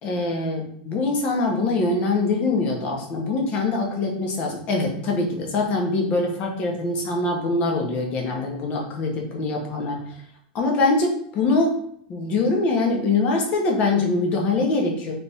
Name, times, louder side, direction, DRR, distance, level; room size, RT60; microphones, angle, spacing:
voice 1, 0.0-10.0 10.5-11.8 12.1-15.1, left 3 dB, 30° left, 0 dB, 1.0 m, -23 dB
3.5 x 3.3 x 4.2 m, 0.67 s
supercardioid pair, 170°, 5 cm